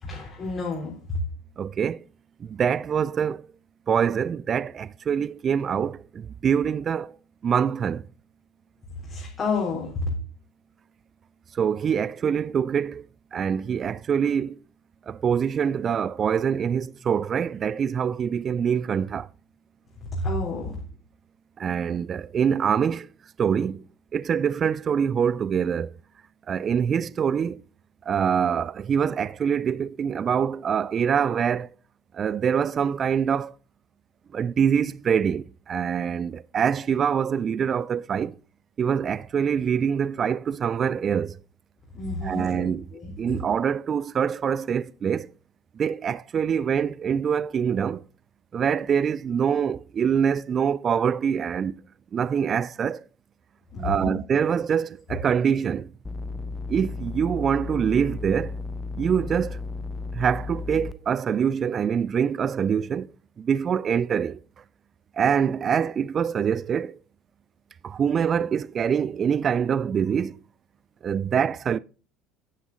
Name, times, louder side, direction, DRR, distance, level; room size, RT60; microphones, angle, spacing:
voice 1, 0.0-0.9 9.0-10.0 20.1-20.8 41.9-43.1 53.7-54.2, left 3 dB, 35° left, 3.6 m, -30 dB
voice 2, 1.6-2.0 2.4-3.4 3.9-7.1 7.4-8.0 11.6-13.0 13.3-14.6 15.1-19.3 21.6-23.1 23.4-23.8 24.1-25.9 26.5-27.6 28.1-31.7 32.1-33.5 34.3-38.4 38.8-41.4 42.2-42.9 43.2-45.3 45.8-48.0 48.5-51.7 52.1-53.0 53.8-55.9 56.7-58.6 59.0-59.6 60.1-63.1 63.4-64.4 65.2-67.0 67.8-70.4 71.0-71.8, right 7 dB, 35° right, 0.4 m, -24 dB
sound 1, 56.0-60.9, left 3 dB, 20° left, 0.8 m, -34 dB
9.7 x 9.2 x 4.0 m
figure-of-eight pair, 65°, 0 cm